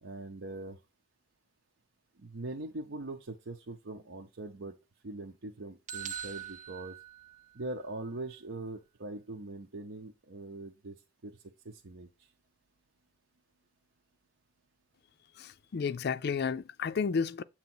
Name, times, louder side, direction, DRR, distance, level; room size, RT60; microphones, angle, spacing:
voice 1, 0.0-0.8 2.2-4.7 5.0-7.0 7.5-11.0 11.2-11.4 11.6-12.1, right 2 dB, 65° right, 0.8 m, -42 dB
sound 1, 5.9-7.8, right 9 dB, 40° right, 0.4 m, -42 dB
voice 2, 15.4-17.4, left 5 dB, 55° left, 0.4 m, -32 dB
8.1 x 2.9 x 5.9 m
head